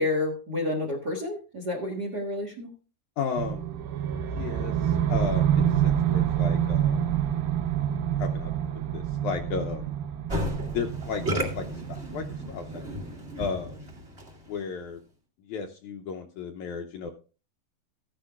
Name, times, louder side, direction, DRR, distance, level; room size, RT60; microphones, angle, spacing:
voice 1, 0.0-2.7, left 2 dB, 50° right, 2 dB, 1.2 m, -29 dB
voice 2, 3.2-3.6 4.3-7.1 8.2-8.5 8.9-9.9 10.7-12.8 13.4-13.8 14.5-15.0 15.5-17.1, left 6 dB, 75° left, 3 dB, 1.8 m, -34 dB
sound 1, 3.4-13.4, right 10 dB, 80° right, 2.7 m, -27 dB
Musical instrument, 10.3-14.5, left 1 dB, 25° right, 1.8 m, -34 dB
15.0 x 10.0 x 2.4 m, 0.36 s
omnidirectional pair, 4.1 m